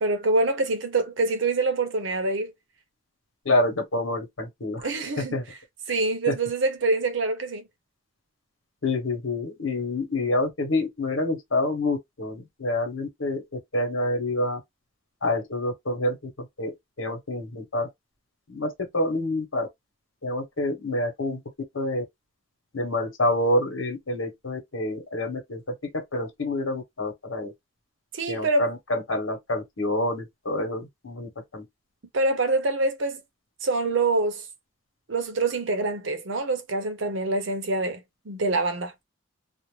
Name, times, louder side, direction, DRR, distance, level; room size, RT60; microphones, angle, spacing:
voice 1, 0.0-2.5 4.8-5.4 5.9-7.6 28.1-28.7 32.1-33.2 33.6-34.4 35.1-38.0 38.3-38.9, right 2 dB, 70° right, 0.7 m, -25 dB
voice 2, 3.4-4.9 5.2-5.4 6.3-6.4 8.8-13.4 13.7-14.6 15.2-17.9 18.5-19.7 20.2-21.4 21.7-22.0 22.7-25.6 25.9-27.5 28.3-31.6, left 1 dB, 80° left, 1.1 m, -27 dB
2.5 x 2.1 x 3.1 m
head